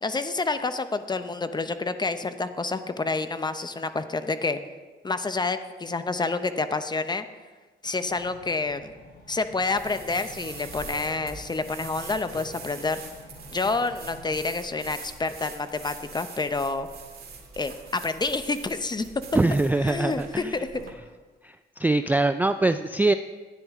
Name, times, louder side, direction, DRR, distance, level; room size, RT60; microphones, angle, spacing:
voice 1, 0.0-4.6 5.0-7.3 7.8-8.9 9.3-13.0 13.5-16.9 17.6-19.1 19.9-20.8, left 3 dB, 20° left, 10 dB, 0.7 m, -28 dB
sound 1, 8.1-14.4, left 3 dB, 50° left, 3.6 m, -49 dB
sound 2, 9.7-20.9, right 5 dB, 50° right, 2.1 m, -43 dB
voice 2, 19.3-20.6 21.4-23.1, right 2 dB, 10° right, 10 dB, 0.3 m, -23 dB
13.0 x 9.9 x 3.6 m, 1.3 s
cardioid pair, 90°, 20 cm